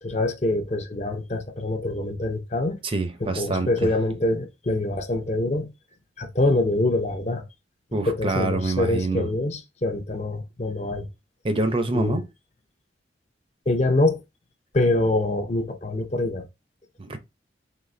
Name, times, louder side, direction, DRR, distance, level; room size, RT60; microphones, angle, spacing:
voice 1, 0.0-2.8 3.2-5.7 6.2-7.5 7.9-11.1 11.9-12.2 13.7-14.2 14.7-16.5, left 2 dB, 40° left, 0.7 m, -25 dB
voice 2, 2.8-3.9 7.9-9.3 11.4-12.3 17.0-17.2, right 2 dB, 30° right, 0.6 m, -26 dB
4.0 x 3.2 x 3.2 m
head